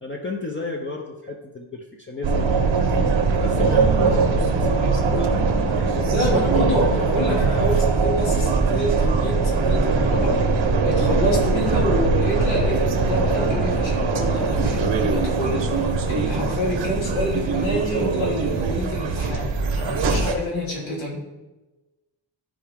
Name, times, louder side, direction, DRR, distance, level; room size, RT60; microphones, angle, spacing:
voice 1, 0.0-6.1 19.9-20.0, left 2 dB, 25° left, 1 dB, 0.7 m, -33 dB
sound 1, 2.2-20.3, right 4 dB, 75° right, 1.1 m, -21 dB
voice 2, 6.1-10.4 10.8-21.2, left 1 dB, 90° left, -3 dB, 2.7 m, -27 dB
13.5 x 4.9 x 3.5 m, 1.1 s
wide cardioid pair, 170°, 46 cm